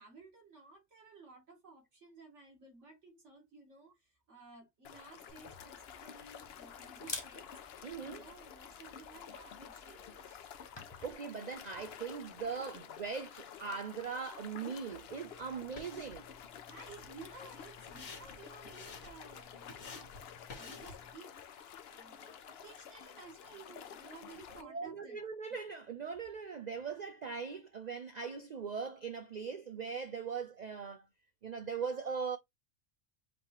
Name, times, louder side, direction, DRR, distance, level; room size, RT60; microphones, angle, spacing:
voice 1, 0.0-7.5 8.0-10.5 16.6-20.2 20.5-21.3 21.9-25.2, right 3 dB, 65° right, 2.6 m, -55 dB
sound 1, 4.8-24.6, left 8 dB, 60° left, 0.8 m, -51 dB
Camera, 5.3-11.1, left 3 dB, 25° left, 0.9 m, -50 dB
voice 2, 7.8-8.2 11.0-16.3 24.6-31.0 31.4-32.4, right 5 dB, 90° right, 0.3 m, -40 dB
sound 2, 15.1-21.1, left 3 dB, 85° left, 1.7 m, -53 dB
5.2 x 3.1 x 2.8 m
omnidirectional pair, 1.3 m